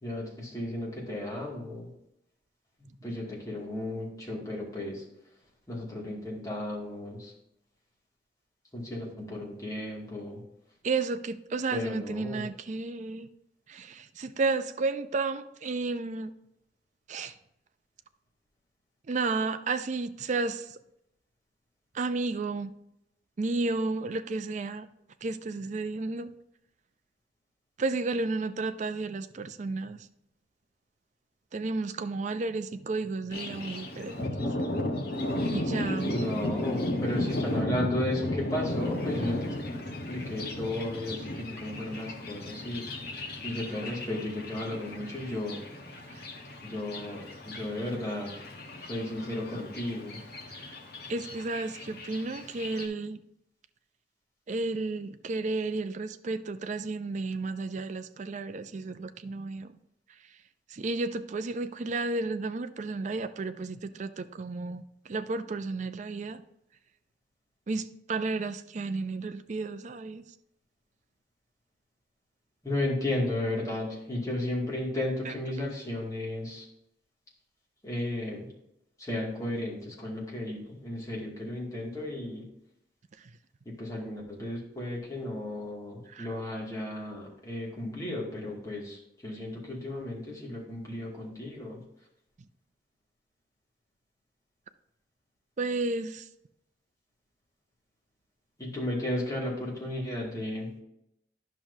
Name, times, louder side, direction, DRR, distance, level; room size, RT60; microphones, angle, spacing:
voice 1, 0.0-1.9 3.0-5.0 5.7-7.3 8.7-10.4 11.7-12.5 36.1-39.5 40.1-42.9 43.4-45.6 46.6-48.3 48.8-50.2 72.6-76.7 77.8-78.5 79.0-82.4 83.7-91.8 98.6-100.7, left 1 dB, 20° left, -4 dB, 2.2 m, -34 dB
voice 2, 10.8-13.3 13.7-16.3 17.1-17.3 19.1-20.8 21.9-22.7 23.4-24.9 25.2-26.3 27.8-30.1 31.5-34.5 35.5-36.2 46.1-46.2 50.5-50.8 51.1-53.2 54.5-59.8 60.7-66.4 67.7-70.2 75.2-75.3 86.1-86.3 95.6-96.3, right 3 dB, 40° right, 10 dB, 0.4 m, -32 dB
Thunder, 33.3-52.9, left 1 dB, 60° left, 1.1 m, -35 dB
10.5 x 5.9 x 2.7 m, 0.81 s
head